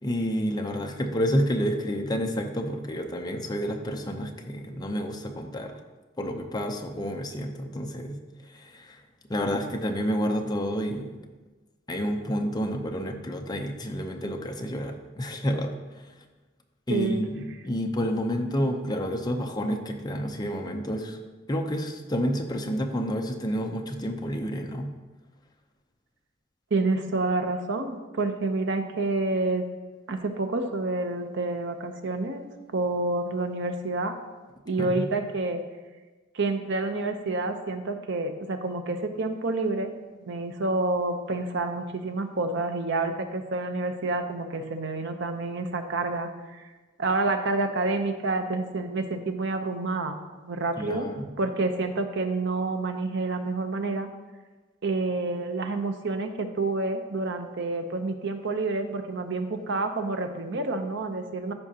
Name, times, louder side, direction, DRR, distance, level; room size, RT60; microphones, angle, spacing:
voice 1, 0.0-5.7 6.2-9.0 9.3-11.2 11.9-16.1 16.9-21.2 21.5-24.9 34.8-35.1 50.8-51.3, equal, 20° left, 3 dB, 0.7 m, -29 dB
voice 2, 16.9-17.2 26.7-29.6 30.1-32.5 32.7-34.2 34.7-35.6 36.3-39.9 40.2-46.3 47.0-51.1 51.4-54.1 54.8-61.5, right 3 dB, 60° right, 7 dB, 0.8 m, -28 dB
14.0 x 5.0 x 2.9 m, 1.2 s
head